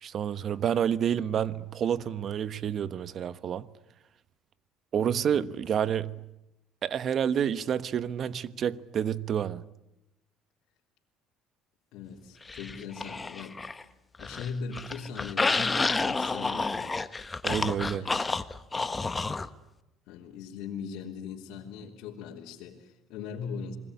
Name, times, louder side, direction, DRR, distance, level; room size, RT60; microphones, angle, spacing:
voice 1, 0.0-3.7 4.9-6.2 6.8-9.6 17.4-18.1, right 8 dB, 50° right, 1.1 m, -29 dB
voice 2, 11.9-13.7 14.2-16.9 17.9-18.3 20.1-23.8, left 6 dB, 75° left, 3.4 m, -40 dB
sound 1, 12.5-13.8 14.1-19.5, left 3 dB, 20° left, 1.2 m, -30 dB
28.5 x 20.5 x 9.7 m
supercardioid pair, 100°, 0 cm